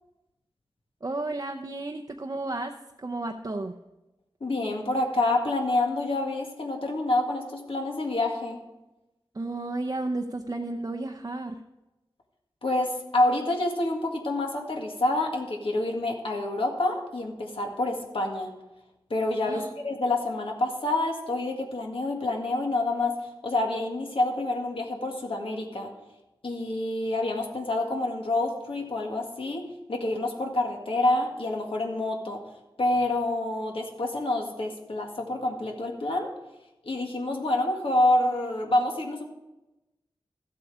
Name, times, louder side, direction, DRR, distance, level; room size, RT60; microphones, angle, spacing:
voice 1, 1.0-3.8 9.3-11.6 19.5-19.7, right 2 dB, 40° right, 4 dB, 0.7 m, -33 dB
voice 2, 4.4-8.6 12.6-18.5 19.1-25.9 26.4-32.4 32.8-36.3 36.8-39.2, left 2 dB, 70° left, 1 dB, 1.9 m, -27 dB
13.0 x 7.9 x 4.9 m, 1.0 s
wide cardioid pair, 85°, 9 cm